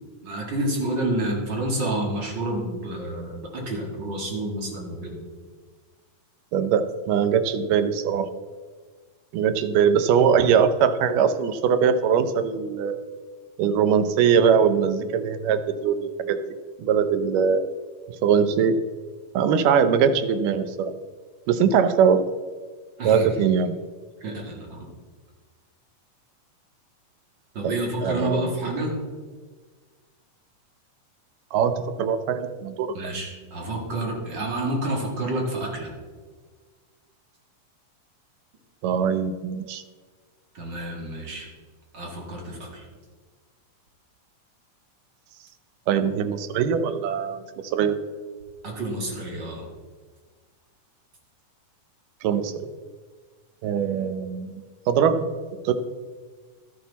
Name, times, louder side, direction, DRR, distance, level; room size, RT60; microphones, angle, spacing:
voice 1, 0.2-5.2 23.0-23.3 24.2-24.9 27.5-29.0 32.9-35.9 40.5-41.5 41.9-42.9 48.6-49.7, right 1 dB, 40° right, -1 dB, 2.2 m, -29 dB
voice 2, 6.5-8.3 9.3-13.0 13.6-16.4 16.8-17.6 18.2-18.8 19.3-20.9 21.5-22.2 23.1-23.7 27.6-27.8 28.0-28.5 31.5-32.9 38.8-39.8 45.9-48.0 52.2-52.5 53.6-55.3 55.6-55.7, right 7 dB, 85° right, 10 dB, 2.4 m, -21 dB
12.5 x 10.5 x 4.1 m, 1.5 s
omnidirectional pair, 3.7 m